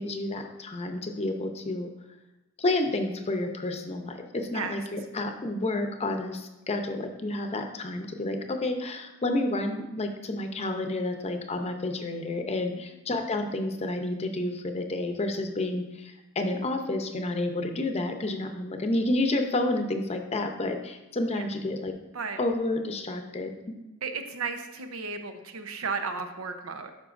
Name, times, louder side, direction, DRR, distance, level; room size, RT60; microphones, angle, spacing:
voice 1, 0.0-1.9 2.6-21.9 22.4-23.8, left 2 dB, 30° left, 5 dB, 0.7 m, -30 dB
voice 2, 24.0-26.9, right 5 dB, 85° right, 7 dB, 0.7 m, -34 dB
12.0 x 5.4 x 2.5 m, 1.0 s
head